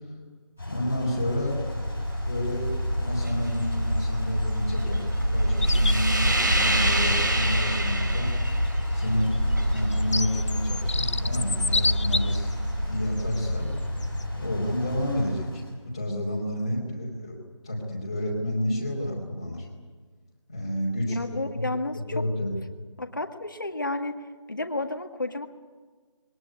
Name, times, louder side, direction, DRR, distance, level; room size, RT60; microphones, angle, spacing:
voice 1, 0.6-1.8 2.2-8.3 8.9-9.3 9.6-12.5 12.8-13.7 14.3-17.4 17.6-19.7 20.5-21.2 21.5-21.7 22.1-22.5, left 1 dB, 10° left, -3 dB, 2.9 m, -30 dB
sound 1, 0.6-15.7, left 1 dB, 5° right, 1.0 m, -35 dB
sound 2, 1.2-15.2, equal, 40° right, 3.2 m, -27 dB
sound 3, 5.6-6.0 7.6-7.7 8.8-12.5 13.2-13.4 14.0-14.2, left 3 dB, 70° left, 0.7 m, -29 dB
voice 2, 21.0-22.2 23.0-24.2 24.5-25.5, left 2 dB, 40° left, 5 dB, 1.8 m, -31 dB
21.5 x 19.0 x 9.5 m, 1.5 s
figure-of-eight pair, 180°, 16 cm